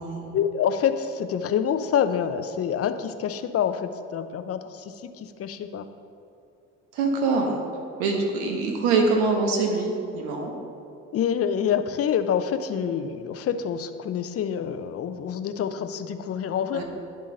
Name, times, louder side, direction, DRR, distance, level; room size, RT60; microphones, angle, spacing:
voice 1, 0.3-5.9 11.1-16.8, left 8 dB, 45° left, 10 dB, 0.5 m, -27 dB
voice 2, 6.9-7.6 8.0-10.5 16.7-16.8, right 3 dB, 80° right, 2 dB, 1.1 m, -24 dB
10.5 x 3.7 x 3.9 m, 2.6 s
hypercardioid pair, 50°, 34 cm